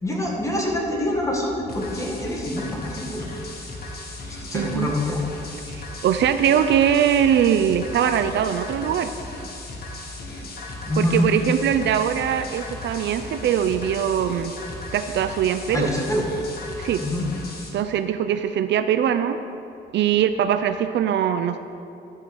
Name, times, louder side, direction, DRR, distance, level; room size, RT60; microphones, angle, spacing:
voice 1, 0.0-3.3 4.5-5.2 10.8-11.3 15.7-16.3 17.0-17.3, left 1 dB, 15° left, -2 dB, 1.8 m, -25 dB
sound 1, 1.7-17.7, left 2 dB, 50° left, 1.5 m, -36 dB
voice 2, 4.5-4.9 5.7-9.1 11.0-14.5 14.9-15.9 16.8-17.0 17.7-19.4 19.9-21.6, right 9 dB, 65° right, 9 dB, 0.4 m, -22 dB
11.5 x 4.5 x 5.3 m, 2.6 s
cardioid pair, 90°, 20 cm